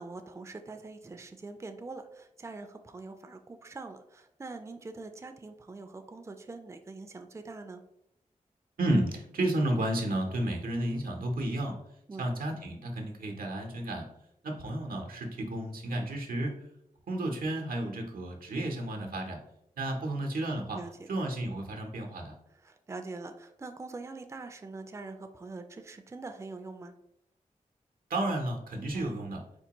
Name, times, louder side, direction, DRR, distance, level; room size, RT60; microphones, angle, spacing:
voice 1, 0.0-7.8 12.1-12.2 20.7-21.1 22.6-26.9 28.9-29.1, right 3 dB, 20° right, 7 dB, 0.4 m, -43 dB
voice 2, 8.8-11.8 12.2-14.1 14.4-16.6 17.1-19.4 19.8-20.8 21.1-22.3 28.1-29.4, right 1 dB, 85° right, 2 dB, 0.7 m, -32 dB
4.4 x 2.2 x 2.9 m, 0.79 s
cardioid pair, 50°, 14 cm